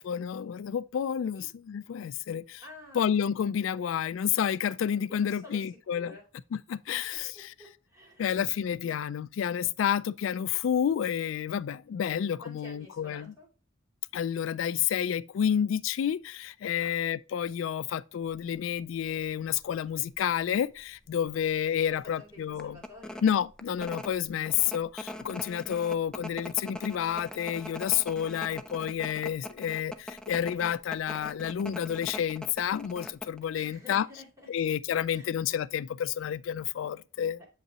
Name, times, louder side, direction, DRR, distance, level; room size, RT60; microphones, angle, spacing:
voice 1, 0.0-2.6 2.9-6.1 6.5-7.5 8.2-13.3 14.1-22.8 23.2-34.1 34.5-37.4, left 9 dB, 80° left, 0.3 m, -30 dB
voice 2, 2.6-3.1 3.8-4.0 5.1-5.7 5.9-6.2 6.9-9.0 12.1-13.5 16.8-17.0 21.6-23.2 33.5-34.5 35.1-35.3 37.4-37.5, left 2 dB, 20° right, 2.9 m, -51 dB
sound 1, 18.3-18.6 19.1-19.2 19.5-20.4 20.8-20.9 21.3-21.5 21.9-22.0 22.6-33.4, left 1 dB, 5° left, 0.4 m, -42 dB
7.7 x 5.4 x 2.8 m
head